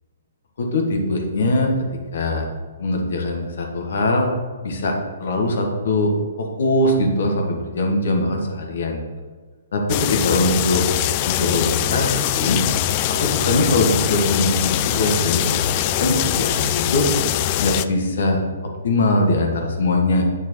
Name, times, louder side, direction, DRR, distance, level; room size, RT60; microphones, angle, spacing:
voice 1, 0.6-1.7 2.1-2.4 2.8-4.3 4.6-4.9 5.2-6.1 6.4-9.0 9.7-10.8 11.3-12.6 13.1-17.1 17.6-18.4 18.8-20.2, left 2 dB, 65° left, 2 dB, 1.6 m, -21 dB
sound 1, 9.9-17.9, left 13 dB, 35° left, 0.3 m, -22 dB
8.6 x 6.6 x 3.2 m, 1.5 s
figure-of-eight pair, 130°, 0 cm